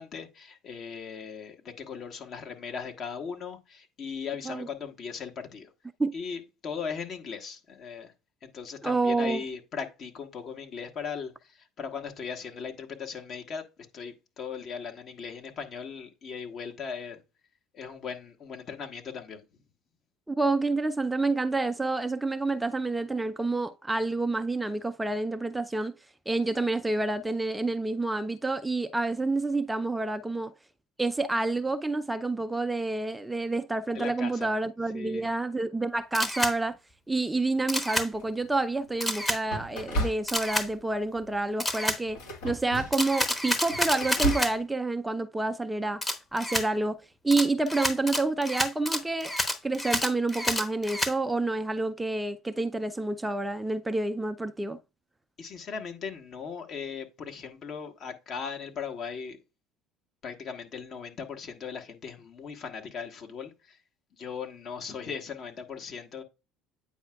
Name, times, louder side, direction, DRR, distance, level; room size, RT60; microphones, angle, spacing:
voice 1, 0.0-5.7 6.1-8.1 8.4-13.6 13.9-17.2 17.7-19.4 33.9-34.5 34.9-35.3 55.4-59.4 60.2-63.8 64.1-66.2, left 6 dB, 50° left, 1.2 m, -38 dB
voice 2, 8.8-9.4 20.3-25.9 26.3-30.5 31.0-36.8 37.1-46.0 46.3-47.0 47.2-49.3 49.6-54.8, right 2 dB, 10° right, 0.4 m, -28 dB
Camera, 36.1-36.5 37.7-38.1 39.0-39.4 40.3-40.7 41.6-42.0 42.9-44.5 46.0-46.7 47.3-51.1, left 1 dB, 15° left, 1.0 m, -29 dB
sound 1, 38.1-38.6 39.5-40.7 41.1-41.4 42.1-43.1 43.5-44.6, equal, 70° left, 1.4 m, -34 dB
8.9 x 4.8 x 2.3 m
hypercardioid pair, 65°, 0 cm